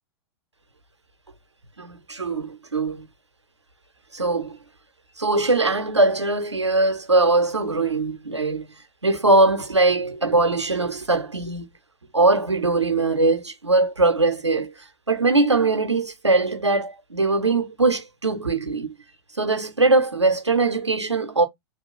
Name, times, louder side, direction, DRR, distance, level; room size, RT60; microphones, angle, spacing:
voice 1, 1.8-3.1 4.1-4.6 5.2-8.7 9.0-11.7 12.1-18.9 19.4-21.5, right 3 dB, 90° right, 0.7 m, -21 dB
3.0 x 2.3 x 3.7 m
figure-of-eight pair, 105°, 14 cm